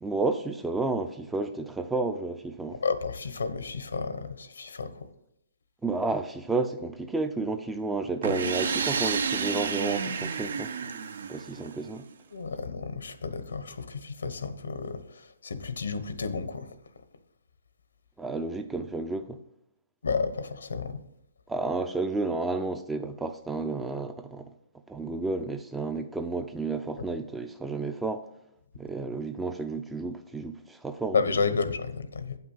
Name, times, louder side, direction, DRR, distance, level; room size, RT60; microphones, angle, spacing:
voice 1, 0.0-2.8 5.8-10.7 11.3-12.1 18.2-19.4 21.5-24.5 24.9-28.3 28.8-31.2, right 3 dB, 5° right, 0.4 m, -31 dB
voice 2, 2.8-5.1 12.3-16.7 20.0-21.0 31.1-32.4, left 4 dB, 85° left, 1.0 m, -31 dB
sound 1, 8.2-12.0, right 5 dB, 70° right, 0.6 m, -30 dB
8.4 x 5.9 x 5.4 m
hypercardioid pair, 155°, 0 cm